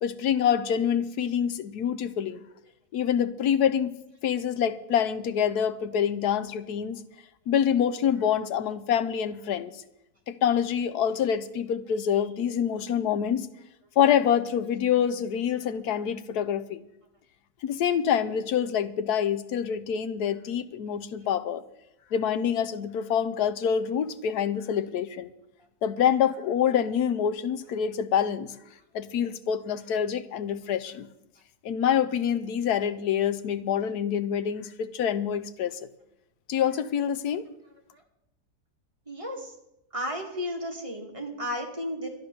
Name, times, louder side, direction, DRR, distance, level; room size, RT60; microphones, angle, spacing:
voice 1, 0.0-2.4 2.9-3.9 4.2-7.0 7.5-9.7 10.3-13.5 14.0-16.8 17.6-21.6 22.1-25.3 25.8-28.5 28.9-31.1 31.6-35.9 36.5-37.5, left 8 dB, 80° left, 13 dB, 1.3 m, -26 dB
voice 2, 39.1-39.5 39.9-42.1, equal, 20° right, 0 dB, 2.2 m, -33 dB
12.0 x 10.5 x 6.9 m, 0.84 s
omnidirectional pair, 1.7 m